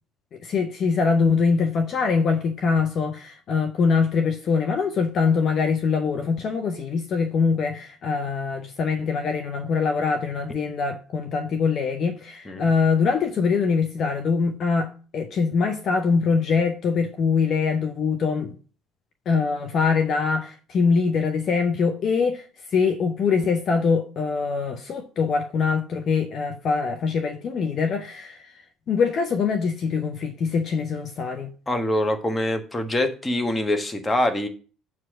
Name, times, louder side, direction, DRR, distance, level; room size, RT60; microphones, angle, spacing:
voice 1, 0.3-18.6 19.3-31.5, left 5 dB, 45° left, 0.8 m, -23 dB
voice 2, 31.7-34.5, left 1 dB, 15° left, 1.3 m, -24 dB
7.3 x 4.8 x 6.4 m
figure-of-eight pair, 55°, 0 cm